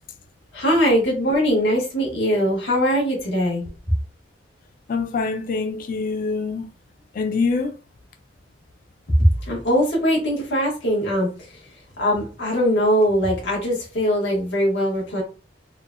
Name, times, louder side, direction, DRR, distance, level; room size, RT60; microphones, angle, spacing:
voice 1, 0.5-3.6 9.2-11.3 12.0-15.2, equal, 70° left, 1.2 m, -21 dB
voice 2, 4.9-6.7 7.1-7.7, left 4 dB, 50° left, 0.4 m, -24 dB
3.5 x 2.2 x 2.5 m
head